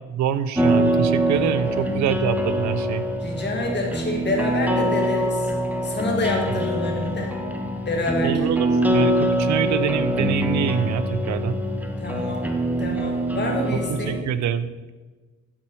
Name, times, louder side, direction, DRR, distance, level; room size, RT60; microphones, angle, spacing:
voice 1, 0.1-3.0 6.6-6.7 8.2-11.6 13.7-14.9, right 9 dB, 70° right, 12 dB, 0.6 m, -26 dB
sound 1, 0.6-14.2, right 1 dB, 5° right, 0.8 m, -24 dB
voice 2, 1.6-2.0 3.2-5.5 5.8-7.3 7.9-8.5 12.0-12.5 12.8-14.2, left 2 dB, 35° left, 1 dB, 2.0 m, -27 dB
11.0 x 4.4 x 4.5 m, 1.2 s
cardioid pair, 90°, 30 cm